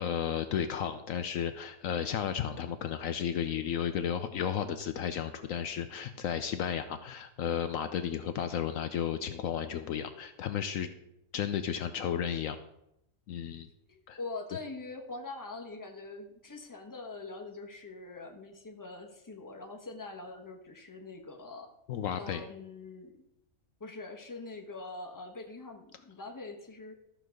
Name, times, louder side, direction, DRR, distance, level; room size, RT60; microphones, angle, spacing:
voice 1, 0.0-10.9 11.3-12.6 13.3-13.7 14.1-14.2 21.9-22.5, left 8 dB, 70° left, 9 dB, 1.0 m, -33 dB
voice 2, 13.9-21.7 22.2-23.1 23.8-27.0, left 3 dB, 15° left, 3 dB, 1.1 m, -43 dB
13.0 x 4.6 x 6.3 m, 0.83 s
omnidirectional pair, 1.5 m